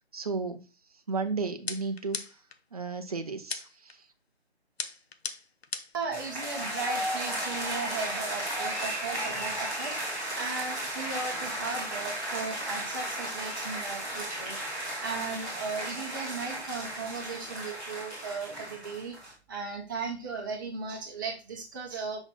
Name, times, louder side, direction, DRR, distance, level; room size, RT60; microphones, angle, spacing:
voice 1, 0.1-0.6 1.1-2.2 2.7-4.0, right 4 dB, 35° right, 0.7 m, -33 dB
sound 1, 1.7-2.6 3.5-3.9 4.8-6.1, left 4 dB, 65° left, 0.8 m, -37 dB
voice 2, 5.9-22.2, right 4 dB, 20° right, 1.1 m, -37 dB
sound 2, 6.1-19.3, right 1 dB, ahead, 0.8 m, -35 dB
5.9 x 4.0 x 4.2 m
figure-of-eight pair, 150°, 33 cm